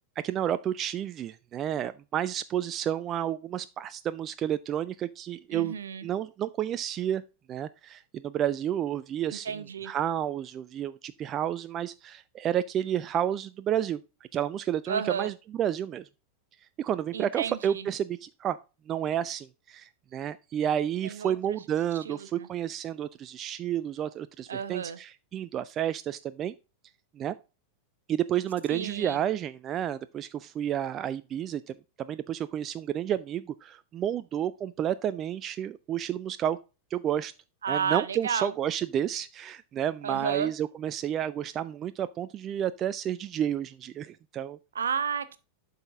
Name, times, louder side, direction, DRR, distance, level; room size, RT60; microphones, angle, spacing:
voice 1, 0.2-5.7 6.0-7.2 7.5-9.5 9.8-14.0 14.3-16.1 16.8-18.6 18.9-26.5 27.2-27.3 28.1-36.6 36.9-37.3 37.7-44.6, right 10 dB, 30° right, 0.3 m, -31 dB
voice 2, 5.5-6.1 9.3-9.9 14.9-15.3 17.1-17.9 21.0-21.6 22.0-22.5 24.5-25.0 28.7-29.2 37.6-38.5 40.0-40.5 44.7-45.4, right 7 dB, 70° right, 0.7 m, -32 dB
11.5 x 4.1 x 3.6 m
figure-of-eight pair, 90°, 0 cm